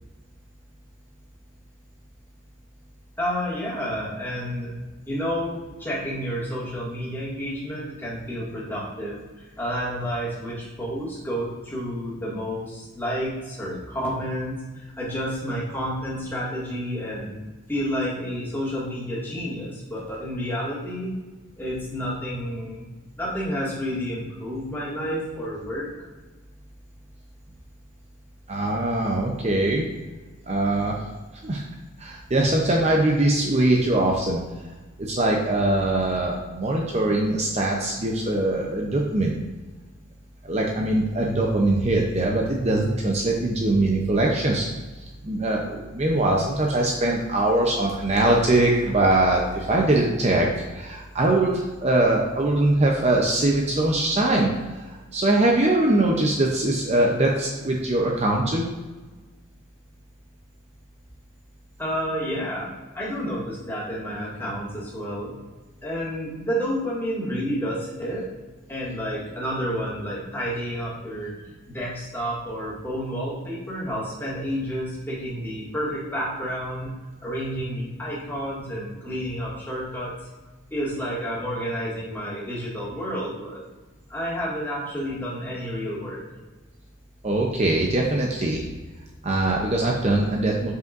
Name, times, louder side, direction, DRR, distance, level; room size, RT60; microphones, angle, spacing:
voice 1, 3.2-4.7 5.1-17.4 17.7-21.2 21.6-22.9 23.2-26.1 61.8-65.4 65.8-68.3 68.7-71.3 71.7-76.9 77.2-80.1 80.7-83.6 84.1-86.2, equal, 10° left, -7 dB, 2.0 m, -30 dB
voice 2, 28.5-29.9 30.5-31.1 31.4-31.6 32.0-34.5 35.0-39.4 40.4-44.7 45.0-58.7 87.2-88.6 89.2-90.7, right 2 dB, 35° right, 0 dB, 0.6 m, -22 dB
7.9 x 5.3 x 2.5 m, 1.2 s
head